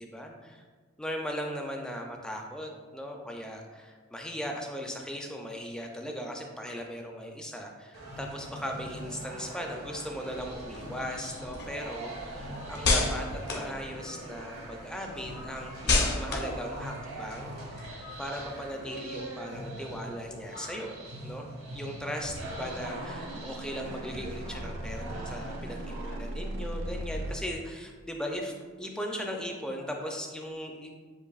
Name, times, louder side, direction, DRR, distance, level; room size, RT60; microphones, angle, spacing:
voice 1, 0.0-0.6 1.0-21.0 21.2-28.5 28.8-31.0, equal, 5° left, 1 dB, 0.3 m, -38 dB
sound 1, 7.9-26.1, right 1 dB, 75° right, 0.9 m, -42 dB
sound 2, 10.3-14.5 14.9-18.4, left 3 dB, 50° left, 0.7 m, -32 dB
sound 3, 22.2-27.3, right 1 dB, 55° right, 0.4 m, -38 dB
7.2 x 2.5 x 2.3 m, 1.5 s
head